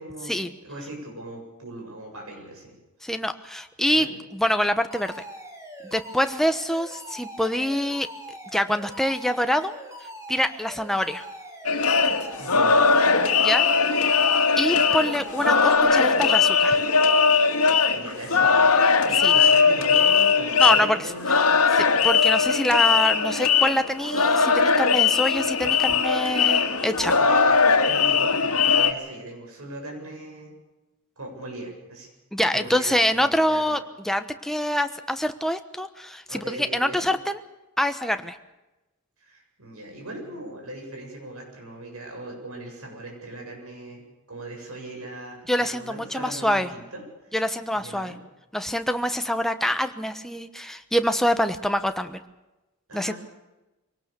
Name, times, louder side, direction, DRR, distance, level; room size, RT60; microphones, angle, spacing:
voice 1, 0.0-2.8 3.8-4.2 12.4-13.0 17.9-18.7 19.1-21.9 26.4-26.5 27.2-27.6 27.8-30.6 31.2-32.1 32.5-33.8 36.3-37.1 39.2-47.0 47.7-48.2 52.9-53.2, right 1 dB, 75° right, 1 dB, 7.5 m, -39 dB
voice 2, 3.0-5.1 5.8-8.1 8.5-9.8 10.3-11.2 13.4-13.7 14.0-14.2 14.6-16.8 19.2-19.3 20.6-21.1 21.8-27.2 32.3-37.4 37.8-38.4 45.5-46.7 47.3-48.1 48.5-52.2 52.9-53.1, equal, ahead, 8 dB, 1.1 m, -25 dB
Alarm, 4.9-15.8, equal, 15° right, 3.7 m, -42 dB
sound 1, 11.6-28.9, left 5 dB, 80° left, 2.0 m, -20 dB
23.5 x 18.5 x 6.9 m, 1.0 s
head